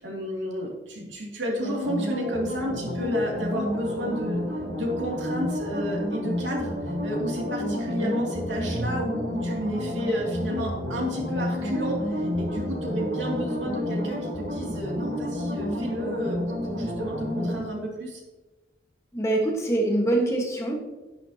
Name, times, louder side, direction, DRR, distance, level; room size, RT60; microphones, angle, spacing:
voice 1, 0.0-4.4 4.7-6.7 7.0-18.2, equal, 90° right, -2 dB, 2.7 m, -31 dB
sound 1, 1.6-17.6, left 1 dB, 70° right, 3.4 m, -30 dB
voice 2, 19.1-20.7, right 1 dB, 15° left, 0 dB, 1.4 m, -24 dB
10.5 x 10.0 x 2.9 m, 1.2 s
head